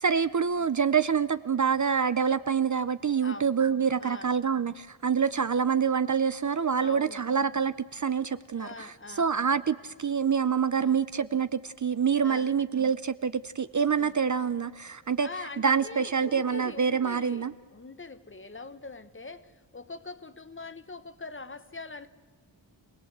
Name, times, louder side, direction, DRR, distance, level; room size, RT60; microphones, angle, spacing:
voice 1, 0.0-8.9 9.2-15.3 15.6-17.5, right 6 dB, 40° right, 14 dB, 0.6 m, -26 dB
voice 2, 3.2-3.6 4.0-4.3 6.7-7.2 8.5-9.3 10.7-11.0 12.2-12.5 14.0-14.1 15.2-22.1, left 3 dB, 25° left, 13 dB, 1.0 m, -43 dB
26.5 x 18.5 x 8.0 m, 1.5 s
wide cardioid pair, 150°, 46 cm